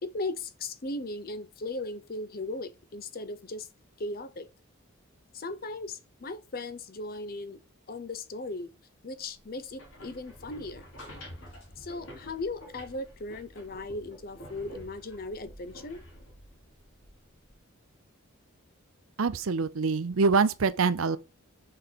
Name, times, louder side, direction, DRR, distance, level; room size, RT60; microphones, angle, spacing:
voice 1, 0.0-3.7 4.0-4.5 5.3-7.6 7.9-8.7 9.0-10.8 11.8-16.0, left 2 dB, 45° left, 0.6 m, -37 dB
sound 1, 9.6-17.6, equal, 65° left, 2.8 m, -49 dB
voice 2, 19.2-21.2, right 4 dB, 70° right, 0.6 m, -25 dB
5.9 x 4.4 x 5.2 m
head